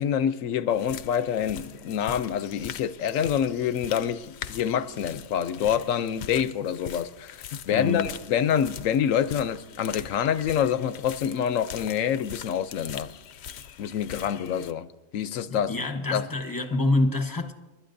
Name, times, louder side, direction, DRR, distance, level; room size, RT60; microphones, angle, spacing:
voice 1, 0.0-13.1 13.8-14.9 15.1-15.7 16.1-16.3, left 9 dB, 85° left, 1.0 m, -26 dB
sound 1, 0.7-14.7, left 9 dB, 65° left, 0.8 m, -42 dB
voice 2, 7.7-8.1 15.5-17.5, left 2 dB, 20° left, 0.8 m, -26 dB
29.0 x 12.0 x 2.6 m
omnidirectional pair, 1.3 m